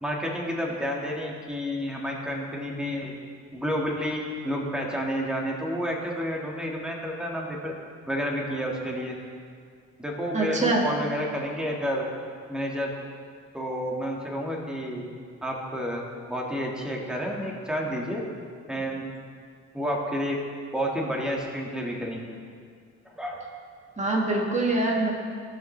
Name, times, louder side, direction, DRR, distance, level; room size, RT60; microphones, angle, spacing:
voice 1, 0.0-3.1 3.5-7.7 8.1-9.2 10.0-12.0 12.5-12.9 13.5-15.0 15.4-16.0 16.3-18.2 18.7-19.0 19.7-20.4 20.7-22.2 23.2-23.4, equal, 5° right, -2 dB, 1.7 m, -30 dB
voice 2, 10.3-10.9 24.0-25.1, right 2 dB, 25° right, -1 dB, 1.8 m, -24 dB
17.5 x 5.8 x 3.3 m, 2.1 s
cardioid pair, 90°, 30 cm